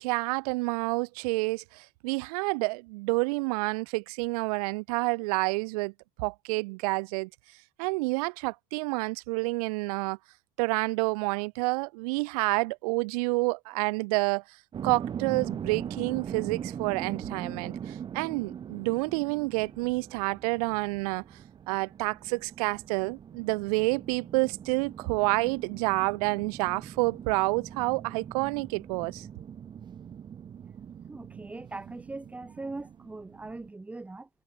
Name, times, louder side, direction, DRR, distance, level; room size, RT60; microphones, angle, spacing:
voice 1, 0.0-5.9 6.2-7.3 7.8-10.2 10.6-14.4 14.8-21.2 21.7-29.2, right 26 dB, 90° right, 1.2 m, -29 dB
sound 1, 14.7-33.7, right 8 dB, 25° right, 5.6 m, -41 dB
voice 2, 31.1-34.3, right 2 dB, 5° right, 2.5 m, -40 dB
cardioid pair, 170°, 19 cm